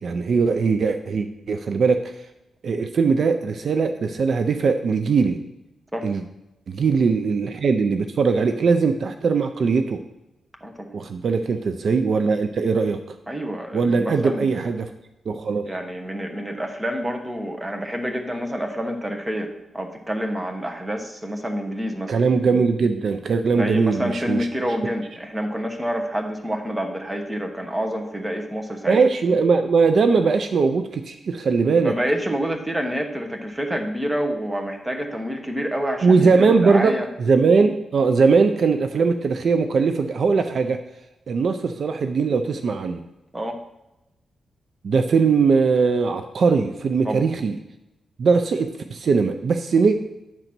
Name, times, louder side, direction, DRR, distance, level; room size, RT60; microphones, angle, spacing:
voice 1, 0.0-2.1 2.6-5.4 6.0-6.2 6.7-10.0 10.9-13.2 13.7-14.9 15.3-15.7 22.1-24.5 28.9-31.9 36.0-40.8 41.3-43.0 44.8-47.6 48.2-50.0, right 4 dB, 60° right, 8 dB, 0.5 m, -20 dB
voice 2, 13.3-14.6 15.6-22.1 23.5-29.0 31.8-37.1 43.3-43.6 47.0-47.3, equal, 15° right, 3 dB, 1.1 m, -28 dB
8.9 x 4.0 x 6.0 m, 0.94 s
cardioid pair, 90°, 0 cm